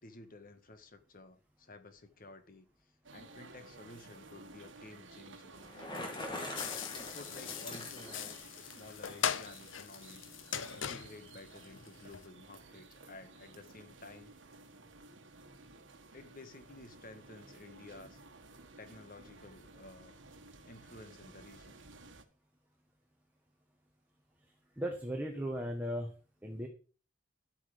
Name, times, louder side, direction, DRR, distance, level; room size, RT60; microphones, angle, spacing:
voice 1, 0.0-5.6 6.9-10.3 10.7-14.4 16.1-18.2 18.8-20.2 20.6-21.8, left 2 dB, 50° left, 1.6 m, -53 dB
Japan Tokyo Train Station Footsteps Melodies, 3.0-22.2, right 3 dB, 75° right, 1.6 m, -55 dB
Bicycle, 5.6-8.4, left 1 dB, 25° left, 2.6 m, -43 dB
sound 1, 6.6-12.3, left 8 dB, 85° left, 0.8 m, -40 dB
voice 2, 24.8-26.1 26.4-26.7, equal, 10° right, 1.7 m, -36 dB
12.5 x 8.7 x 5.0 m
head